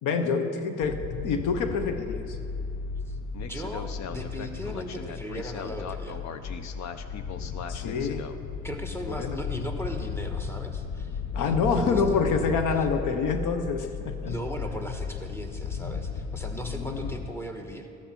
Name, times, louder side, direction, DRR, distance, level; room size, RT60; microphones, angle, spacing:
voice 1, 0.0-2.4 7.7-8.2 9.1-9.4 11.3-14.3 16.7-17.2, left 5 dB, 85° left, 7 dB, 1.1 m, -27 dB
sound 1, 0.8-17.3, left 5 dB, 65° left, 0.8 m, -35 dB
voice 2, 3.4-6.2 8.6-12.2 12.7-12.9 14.2-17.9, equal, 10° left, 3 dB, 1.5 m, -37 dB
14.0 x 12.5 x 4.5 m, 2.6 s
cardioid pair, 90°, 30 cm